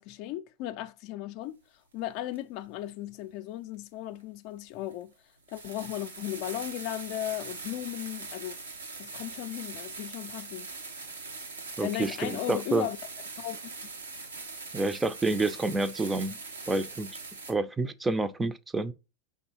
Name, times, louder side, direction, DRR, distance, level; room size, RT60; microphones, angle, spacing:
voice 1, 0.0-1.6 1.9-5.1 5.5-8.6 9.0-10.7 11.8-13.0 13.4-13.7, left 13 dB, 55° left, 0.4 m, -36 dB
sound 1, 2.3-2.4 4.2-4.3 4.9-5.0 5.5-17.5, right 3 dB, 90° right, 1.0 m, -42 dB
voice 2, 11.8-12.9 14.7-16.4 16.7-17.2 17.5-18.9, right 2 dB, 15° right, 0.5 m, -28 dB
5.2 x 3.5 x 2.9 m
hypercardioid pair, 85°, 0 cm